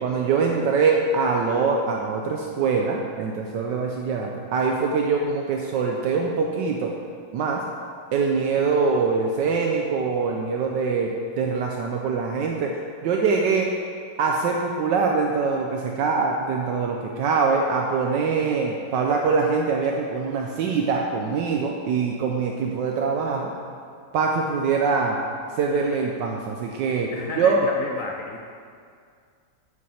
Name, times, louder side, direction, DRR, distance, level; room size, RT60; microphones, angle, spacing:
voice 1, 0.0-6.9 7.3-7.6 8.1-13.7 14.2-23.5 24.1-25.2 25.6-27.6, right 5 dB, 75° right, 1 dB, 1.2 m, -23 dB
voice 2, 27.1-28.4, left 3 dB, 65° left, 1 dB, 0.8 m, -32 dB
7.4 x 6.2 x 5.6 m, 2.2 s
omnidirectional pair, 2.1 m